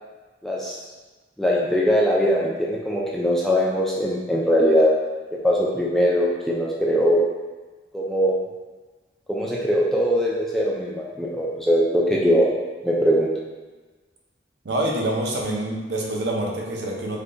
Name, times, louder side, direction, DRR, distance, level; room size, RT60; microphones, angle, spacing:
voice 1, 0.4-0.8 1.4-4.9 5.3-7.2 7.9-8.4 9.3-12.5 12.8-13.3, equal, ahead, -5 dB, 0.3 m, -21 dB
voice 2, 14.6-17.2, right 1 dB, 65° right, -1 dB, 0.6 m, -26 dB
3.4 x 2.3 x 3.8 m, 1.3 s
head